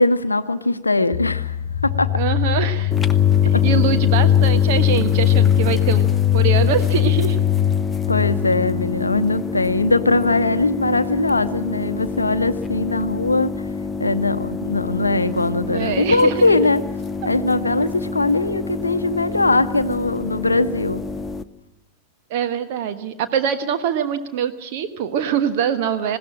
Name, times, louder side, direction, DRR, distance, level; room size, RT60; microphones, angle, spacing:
voice 1, 0.0-1.6 1.8-2.1 3.5-3.6 8.1-13.5 14.0-16.8 17.2-21.0, left 2 dB, 80° left, 11 dB, 0.7 m, -20 dB
sound 1, 1.1-8.9, left 11 dB, 45° left, 1.5 m, -19 dB
voice 2, 2.1-2.9 3.6-7.4 15.6-16.6 22.3-26.2, right 8 dB, 50° right, 9 dB, 1.3 m, -24 dB
sound 2, 2.9-21.4, left 4 dB, 15° left, 0.8 m, -28 dB
20.0 x 16.5 x 8.8 m, 0.99 s
figure-of-eight pair, 90°, 0 cm